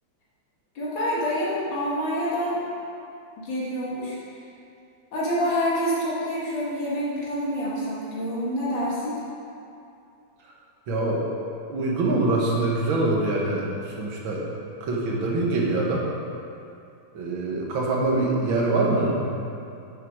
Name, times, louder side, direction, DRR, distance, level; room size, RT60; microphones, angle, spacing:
voice 1, 0.8-2.6 3.4-4.2 5.1-9.2, equal, 75° left, -8 dB, 2.6 m, -27 dB
voice 2, 10.9-11.2 11.7-14.4 14.8-16.1 17.1-19.5, right 2 dB, 80° right, -3 dB, 2.1 m, -24 dB
8.9 x 7.5 x 4.8 m, 2.6 s
omnidirectional pair, 2.1 m